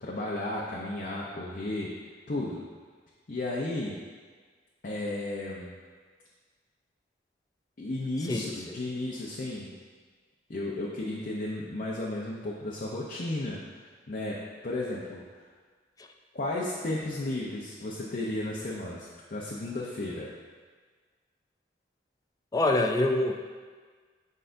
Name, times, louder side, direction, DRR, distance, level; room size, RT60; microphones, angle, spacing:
voice 1, 0.0-1.9 2.3-2.6 3.3-3.9 4.8-5.8 7.8-9.7 10.5-13.6 14.1-15.2 16.3-20.3, left 2 dB, 50° left, -4 dB, 0.7 m, -33 dB
voice 2, 22.5-23.3, left 2 dB, 20° left, 4 dB, 0.3 m, -25 dB
7.8 x 4.9 x 2.6 m, 1.5 s
head